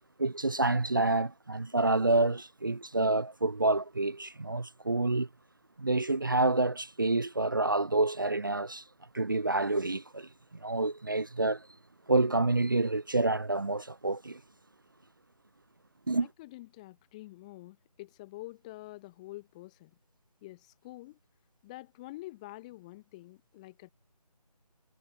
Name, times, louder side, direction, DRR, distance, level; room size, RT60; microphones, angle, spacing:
voice 1, 0.2-5.3 5.8-8.8 9.1-11.7 12.1-14.4 16.1-16.3, right 2 dB, 30° right, 0.5 m, -28 dB
voice 2, 16.2-19.9 20.4-21.2 21.6-23.9, left 19 dB, 10° left, 1.4 m, -47 dB
figure-of-eight pair, 160°, 20 cm